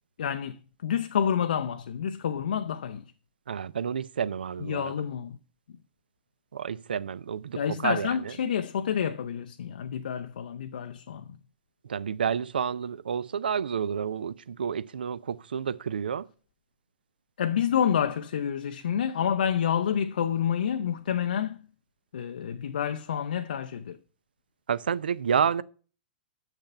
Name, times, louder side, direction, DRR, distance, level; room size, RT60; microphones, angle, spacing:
voice 1, 0.2-3.0 4.6-5.4 7.5-11.2 17.4-21.6 22.1-24.0, left 8 dB, 60° left, 0.5 m, -28 dB
voice 2, 3.5-4.9 6.5-8.3 11.8-16.3 24.7-25.6, right 7 dB, 70° right, 0.4 m, -30 dB
6.7 x 6.7 x 5.4 m
figure-of-eight pair, 105°, 5 cm